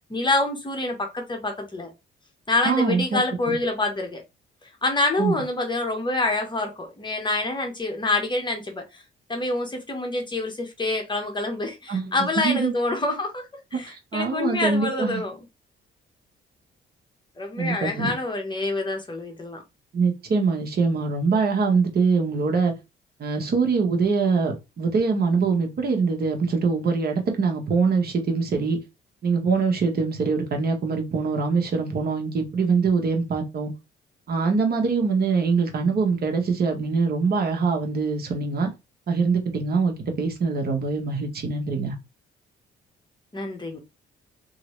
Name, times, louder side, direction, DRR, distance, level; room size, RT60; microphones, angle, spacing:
voice 1, 0.1-1.9 2.5-4.2 4.8-8.8 9.3-13.5 13.7-15.4 17.4-19.6 43.3-43.8, left 2 dB, 25° left, 1.0 m, -26 dB
voice 2, 2.6-3.2 3.5-3.6 5.2-5.4 11.9-12.7 13.9-15.2 17.6-18.1 19.9-22.7 23.2-28.8 29.2-33.7 34.3-38.7 39.1-42.0, right 4 dB, 50° right, 1.1 m, -23 dB
3.0 x 2.7 x 3.0 m
cardioid pair, 90°, 20 cm